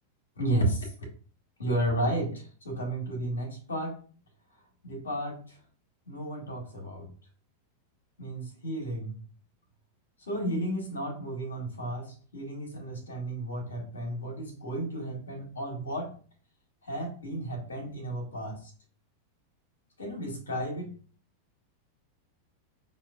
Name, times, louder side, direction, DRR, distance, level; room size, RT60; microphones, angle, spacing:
voice 1, 0.4-0.9 1.6-4.0 4.8-5.6 6.1-7.1 8.2-9.1 10.2-16.1 16.8-18.7 20.0-20.9, right 1 dB, 70° left, 1 dB, 1.4 m, -33 dB
5.6 x 2.8 x 2.4 m, 0.41 s
figure-of-eight pair, 90°, 0 cm